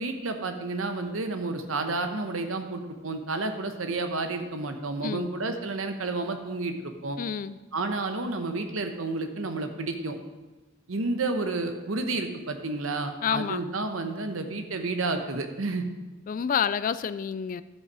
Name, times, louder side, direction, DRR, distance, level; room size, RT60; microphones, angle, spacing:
voice 1, 0.0-7.2 7.7-10.2 10.9-15.9, right 3 dB, 90° right, 7 dB, 1.0 m, -31 dB
voice 2, 7.2-7.6 13.2-13.6 16.3-17.6, left 7 dB, 40° left, 16 dB, 0.3 m, -28 dB
12.5 x 5.6 x 4.8 m, 1.2 s
head